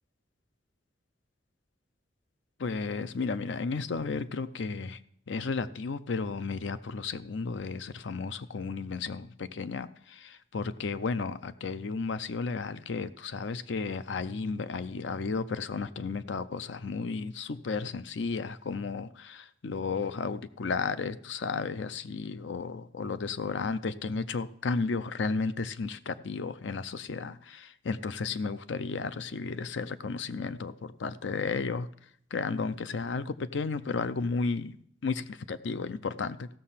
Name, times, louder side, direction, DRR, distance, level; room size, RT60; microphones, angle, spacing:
voice 1, 2.6-5.0 5.3-31.9 32.3-34.8 35.0-36.5, left 4 dB, 70° left, 13 dB, 0.5 m, -33 dB
15.5 x 6.6 x 5.7 m, 0.66 s
head